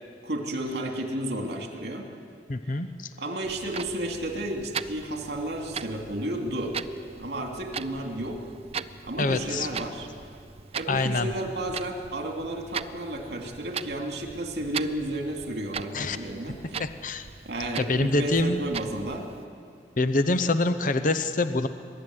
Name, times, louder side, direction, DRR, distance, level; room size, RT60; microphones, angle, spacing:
voice 1, 0.2-2.1 2.6-2.7 3.2-6.8 7.2-8.4 9.0-10.1 10.7-16.8 17.4-19.3, right 1 dB, 65° right, 2 dB, 2.6 m, -32 dB
voice 2, 2.5-3.1 9.2-9.7 10.9-11.3 15.9-16.2 16.8-17.3 17.8-18.6 20.0-21.7, left 2 dB, 45° left, 9 dB, 0.8 m, -25 dB
Clock, 3.4-19.4, right 6 dB, 35° right, 0.5 m, -40 dB
23.0 x 12.5 x 9.6 m, 2.2 s
head